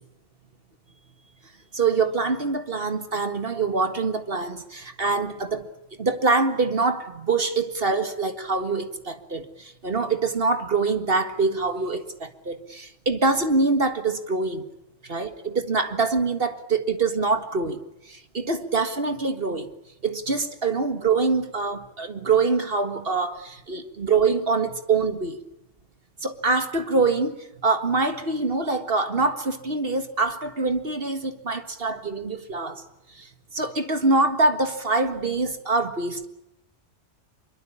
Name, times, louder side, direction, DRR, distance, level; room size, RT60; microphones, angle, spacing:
voice 1, 1.7-5.7 6.0-14.7 15.0-17.8 18.1-19.7 20.0-25.4 26.2-27.4 27.6-32.8 33.1-36.3, right 3 dB, 50° right, 2.0 m, -24 dB
25.0 x 23.0 x 8.6 m
omnidirectional pair, 1.3 m